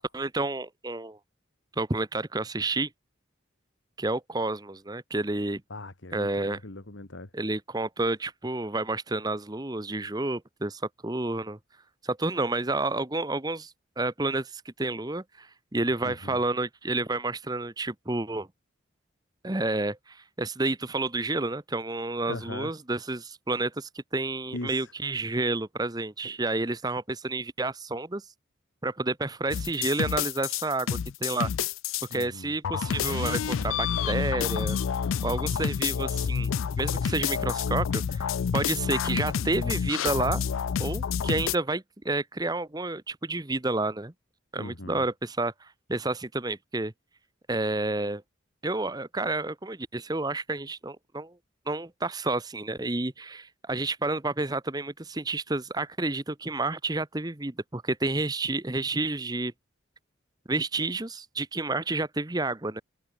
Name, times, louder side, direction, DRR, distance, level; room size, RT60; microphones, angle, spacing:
voice 1, 0.1-1.2 1.8-2.9 4.0-5.6 6.1-6.6 7.3-11.6 12.0-18.5 19.4-28.2 28.8-31.5 32.1-34.8 35.2-36.5 36.8-40.4 40.8-44.1 44.5-46.9 47.5-48.2 48.6-51.3 51.7-59.5 60.5-62.8, right 2 dB, 20° right, 1.0 m, -30 dB
voice 2, 5.7-7.3 16.0-16.4 22.3-22.7 24.5-24.9 32.1-32.5 44.6-45.0, left 2 dB, 70° left, 1.9 m, -39 dB
sound 1, 29.5-32.2 32.6-41.6, left 7 dB, 85° left, 0.4 m, -29 dB
open air
head